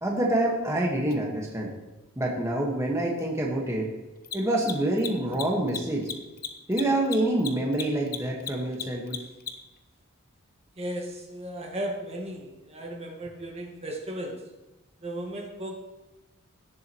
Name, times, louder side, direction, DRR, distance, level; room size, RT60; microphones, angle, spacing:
voice 1, 0.0-1.7 2.2-3.9 4.3-6.1 6.7-9.2, right 1 dB, 15° right, -2 dB, 1.4 m, -26 dB
Mechanisms, 1.1-1.2 4.2-9.8, left 7 dB, 45° left, 0.9 m, -36 dB
voice 2, 10.8-14.4 15.0-15.7, right 1 dB, 30° right, 0 dB, 1.5 m, -35 dB
17.0 x 7.4 x 3.0 m, 1.1 s
head